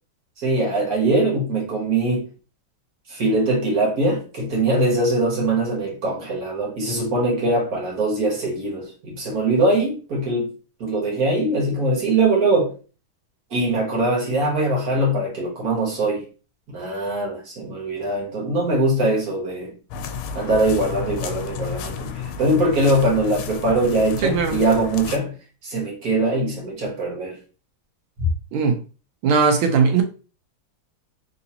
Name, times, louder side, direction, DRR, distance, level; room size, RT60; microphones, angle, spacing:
voice 1, 0.4-2.3 3.1-10.5 10.8-12.7 13.5-16.2 16.7-19.7 20.3-25.3 25.6-27.4, right 2 dB, 50° right, 1.6 m, -22 dB
sound 1, 19.9-25.2, left 6 dB, 85° left, 1.4 m, -32 dB
voice 2, 24.2-24.6 28.5-28.8 29.2-30.0, right 5 dB, 85° right, 1.5 m, -18 dB
3.8 x 2.7 x 2.8 m
omnidirectional pair, 2.2 m